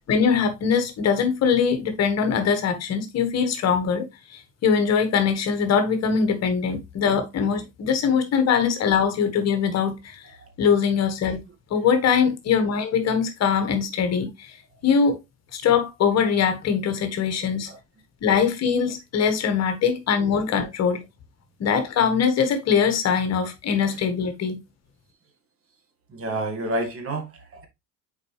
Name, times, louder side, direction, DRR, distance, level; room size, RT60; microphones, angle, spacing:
voice 1, 0.0-10.2 10.6-11.4 11.7-14.6 14.8-15.2 15.5-17.7 18.2-21.0 21.6-24.6, left 6 dB, 45° left, 1.4 m, -22 dB
voice 2, 26.1-27.7, right 1 dB, 40° right, 1.9 m, -30 dB
6.4 x 4.7 x 3.1 m
supercardioid pair, 105°, 35 cm